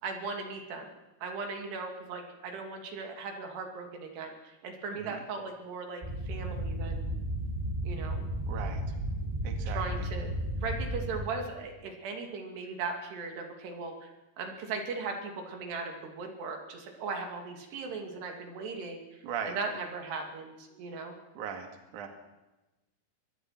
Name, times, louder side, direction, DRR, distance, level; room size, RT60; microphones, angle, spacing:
voice 1, 0.0-0.9 1.2-7.1 7.8-8.2 9.7-10.3 10.6-14.1 14.4-19.0 19.4-21.2, right 4 dB, 85° right, 4 dB, 4.8 m, -38 dB
voice 2, 4.9-5.2 8.5-8.8 9.4-10.1 19.2-19.5 21.4-21.7 21.9-22.1, right 7 dB, 55° right, 5 dB, 3.2 m, -38 dB
sound 1, 6.0-11.3, right 1 dB, 10° right, 3.8 m, -33 dB
23.5 x 22.5 x 5.9 m, 1.0 s
omnidirectional pair, 4.6 m